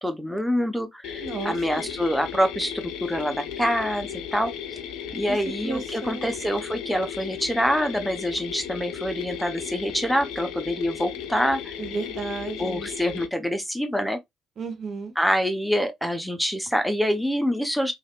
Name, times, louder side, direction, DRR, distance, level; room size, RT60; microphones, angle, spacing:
voice 1, 0.0-4.5 5.1-11.7 12.6-14.2 15.2-17.9, equal, ahead, 0.7 m, -26 dB
sound 1, 1.0-13.3, left 8 dB, 65° left, 0.3 m, -35 dB
voice 2, 1.2-1.9 5.3-5.4 5.6-6.3 11.8-12.9 14.6-15.1, right 4 dB, 50° right, 0.7 m, -33 dB
3.3 x 2.4 x 2.2 m
figure-of-eight pair, 45°, 0 cm